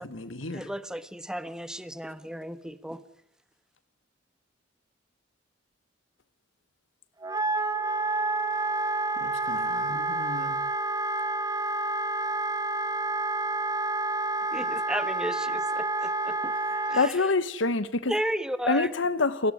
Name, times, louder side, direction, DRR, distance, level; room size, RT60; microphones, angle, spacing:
voice 1, 0.0-0.7 9.2-10.6, left 2 dB, 90° left, 2.1 m, -39 dB
voice 2, 0.5-3.0 14.5-16.5 16.9-17.3 18.1-18.9, equal, 5° right, 1.3 m, -34 dB
Wind instrument woodwind instrument, 7.2-17.1, right 2 dB, 20° right, 1.5 m, -29 dB
voice 3, 16.9-18.1 18.7-19.5, left 3 dB, 75° left, 1.1 m, -25 dB
29.0 x 20.5 x 9.9 m
head